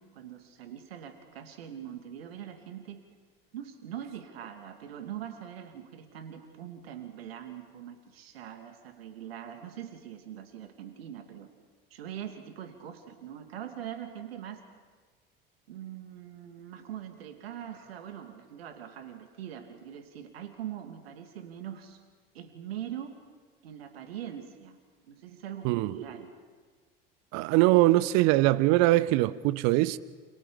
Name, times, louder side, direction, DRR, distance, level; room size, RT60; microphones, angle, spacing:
voice 1, 0.0-3.0 3.5-11.5 11.9-14.6 15.7-22.0 22.3-23.1 23.6-24.8 25.1-26.3, right 10 dB, 80° right, 2.9 m, -42 dB
voice 2, 25.6-25.9 27.3-30.0, right 18 dB, 60° right, 1.0 m, -22 dB
29.0 x 28.5 x 5.3 m
hypercardioid pair, 65°, 30 cm